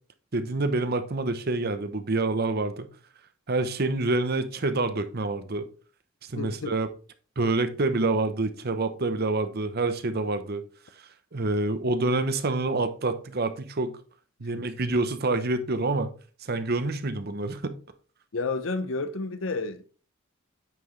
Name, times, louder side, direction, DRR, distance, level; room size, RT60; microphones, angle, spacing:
voice 1, 0.3-2.9 3.5-5.7 6.3-6.9 7.4-10.6 11.3-14.0 14.4-16.1 16.5-17.7, right 2 dB, 50° right, 0.8 m, -27 dB
voice 2, 6.3-6.8 14.6-14.7 18.3-19.8, left 3 dB, 65° left, 0.8 m, -31 dB
9.1 x 5.9 x 3.2 m
head